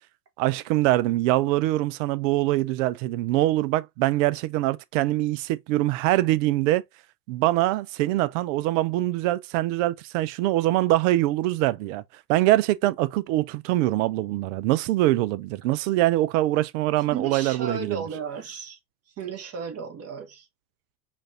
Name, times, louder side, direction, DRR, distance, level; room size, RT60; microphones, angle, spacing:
voice 1, 0.4-6.8 7.3-12.0 12.3-18.0, right 16 dB, 50° right, 0.5 m, -23 dB
voice 2, 17.1-18.8 19.2-20.5, right 5 dB, 30° right, 1.1 m, -34 dB
5.1 x 2.5 x 2.6 m
hypercardioid pair, 105°, 48 cm